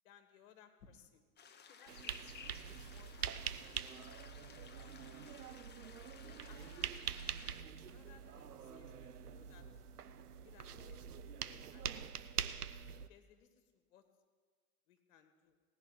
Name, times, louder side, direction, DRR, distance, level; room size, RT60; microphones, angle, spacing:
voice 1, 0.0-1.2 1.7-2.4 2.9-3.3 3.9-4.7 6.2-7.3 7.9-9.8 10.4-11.9 13.1-14.1 14.9-15.5, left 8 dB, 60° left, 7 dB, 1.7 m, -64 dB
sound 1, 1.4-7.6, left 6 dB, 25° left, 1.1 m, -57 dB
sound 2, 1.9-13.1, right 8 dB, 85° right, 0.6 m, -44 dB
17.5 x 5.9 x 8.9 m, 1.5 s
figure-of-eight pair, 80°, 45 cm